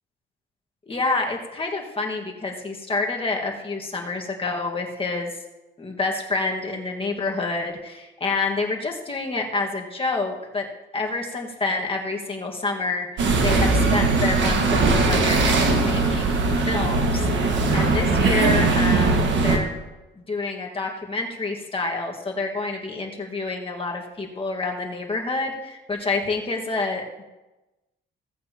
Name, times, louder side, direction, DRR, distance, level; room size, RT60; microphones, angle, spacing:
voice 1, 0.9-5.3 5.8-10.7 10.9-13.1 13.4-15.4 15.7-19.7 20.2-27.2, left 3 dB, 25° left, 1 dB, 1.6 m, -28 dB
sound 1, 13.2-19.6, right 3 dB, 70° right, 1.6 m, -20 dB
16.0 x 8.4 x 2.9 m, 1.0 s
cardioid pair, 90°, 20 cm